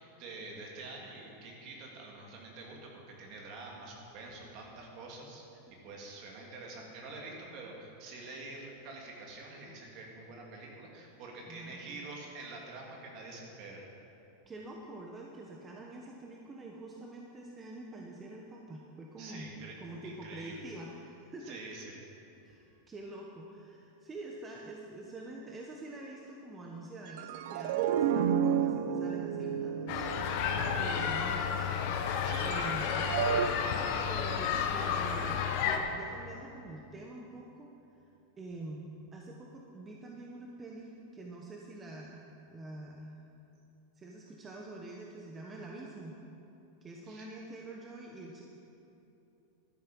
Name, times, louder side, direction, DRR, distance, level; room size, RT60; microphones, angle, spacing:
voice 1, 0.0-13.9 19.2-19.7 20.0-20.6 21.4-22.0 32.3-33.0 47.1-47.3, right 2 dB, 50° right, -1 dB, 3.1 m, -46 dB
voice 2, 11.5-12.0 14.5-19.5 19.8-21.6 22.4-30.1 30.7-31.7 32.4-32.9 34.1-37.7 38.4-43.2 43.9-46.2 46.8-48.4, right 2 dB, 20° right, -1 dB, 1.3 m, -46 dB
sound 1, 27.1-31.4 32.3-33.5, right 8 dB, 70° right, 0.6 m, -31 dB
sound 2, 29.9-35.8, left 7 dB, 60° left, 1.2 m, -31 dB
12.5 x 10.5 x 5.5 m, 2.9 s
supercardioid pair, 125°, 0 cm